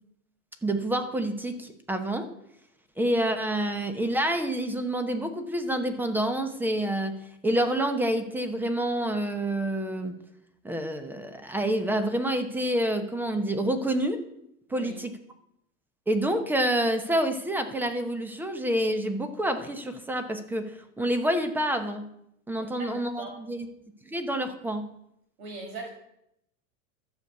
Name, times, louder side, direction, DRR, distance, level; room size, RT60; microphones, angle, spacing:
voice 1, 0.6-2.3 3.0-7.2 7.4-10.1 10.6-14.2 14.7-15.1 16.1-22.1 22.5-23.7 24.0-24.9, right 1 dB, 5° right, 9 dB, 0.9 m, -28 dB
voice 2, 22.6-23.3 25.4-25.9, right 2 dB, 75° right, 1 dB, 6.4 m, -40 dB
12.5 x 7.1 x 8.2 m, 0.78 s
supercardioid pair, 150°, 43 cm